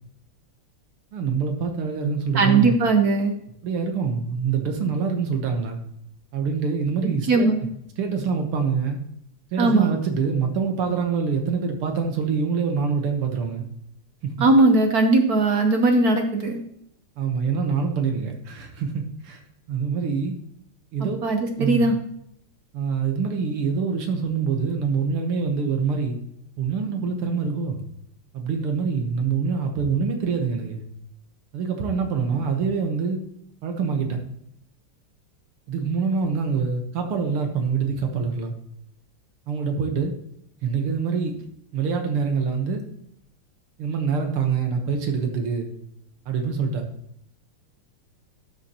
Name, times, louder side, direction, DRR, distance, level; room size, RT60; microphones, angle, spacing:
voice 1, 1.1-2.8 3.6-5.8 6.3-7.5 8.0-9.0 9.5-13.7 14.2-14.3 17.2-19.4 19.7-20.4 20.9-21.2 21.6-21.8 22.7-26.2 26.6-27.8 28.3-30.8 31.5-33.2 33.6-34.2 35.7-38.5 39.5-40.1 40.6-41.3 41.7-42.8 43.8-45.7 46.3-46.9, right 5 dB, 80° right, 4 dB, 2.0 m, -25 dB
voice 2, 2.3-3.3 7.0-7.6 9.6-9.9 14.4-16.6 21.0-21.9, right 3 dB, 55° right, 5 dB, 1.2 m, -19 dB
12.5 x 7.0 x 2.9 m, 0.73 s
omnidirectional pair, 2.4 m